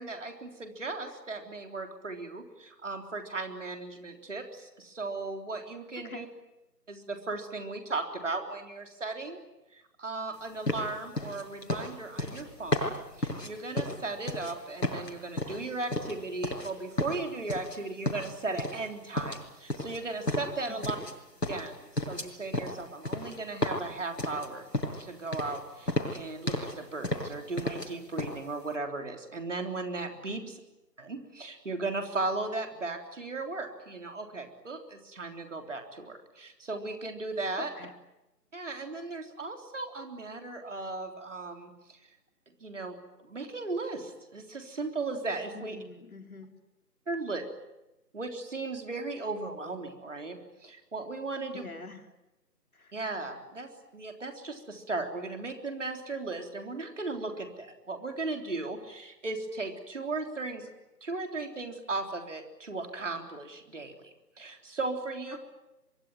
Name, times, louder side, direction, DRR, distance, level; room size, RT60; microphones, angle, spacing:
voice 1, 0.0-6.3 6.9-9.4 9.7-21.0 21.5-24.6 25.0-30.4 31.0-37.7 38.5-42.0 42.6-43.0 43.2-45.8 47.1-47.5 48.1-51.6 52.9-60.7 61.0-65.4, right 3 dB, 50° right, 5 dB, 3.6 m, -36 dB
voice 2, 6.0-6.3 20.7-21.1 30.4-30.5 37.6-37.9 45.5-46.5 51.5-52.1 52.7-52.9, left 3 dB, 60° left, 5 dB, 3.6 m, -45 dB
sound 1, 10.7-14.5 14.8-16.7 17.0-17.8 18.1-18.9 19.2-21.2 21.4-25.1 25.3-25.6 25.9-26.8 27.0-27.9 28.2-28.4, left 1 dB, 80° left, 6.9 m, -33 dB
24.5 x 23.5 x 9.2 m, 0.97 s
figure-of-eight pair, 155°, 48 cm